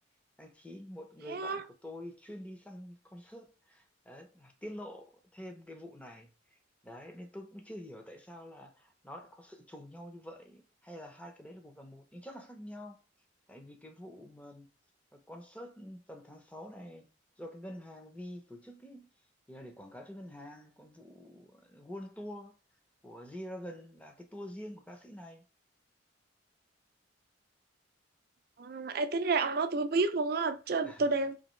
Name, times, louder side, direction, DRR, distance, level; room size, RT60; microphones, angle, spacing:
voice 1, 0.4-13.0 13.5-14.7 15.1-17.1 17.4-19.1 19.5-22.6 23.0-25.5 30.8-31.1, equal, 5° left, 0.7 m, -47 dB
voice 2, 1.3-1.6 28.6-31.4, right 3 dB, 50° right, 0.5 m, -30 dB
4.0 x 2.9 x 3.1 m
head